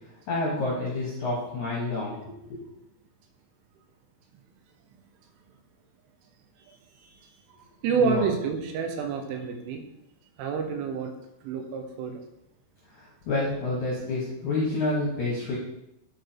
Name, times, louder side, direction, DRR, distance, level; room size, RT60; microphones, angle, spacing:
voice 1, 0.3-2.6 8.0-8.3 12.9-15.6, left 2 dB, 65° left, -5 dB, 1.9 m, -29 dB
voice 2, 7.8-9.8 10.4-11.1 11.4-12.1, right 5 dB, 85° right, 5 dB, 3.4 m, -28 dB
8.6 x 5.0 x 4.5 m, 0.85 s
omnidirectional pair, 5.5 m